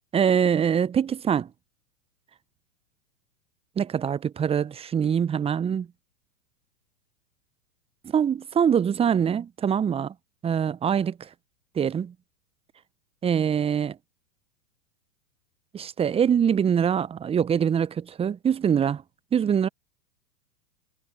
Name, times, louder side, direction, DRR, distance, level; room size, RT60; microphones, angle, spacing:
voice 1, 0.1-1.5 3.8-5.9 8.1-10.1 10.4-11.3 11.7-12.1 13.2-14.0 15.7-19.0 19.3-19.7, right 8 dB, 10° right, 0.9 m, -24 dB
figure-of-eight pair, 100°, 46 cm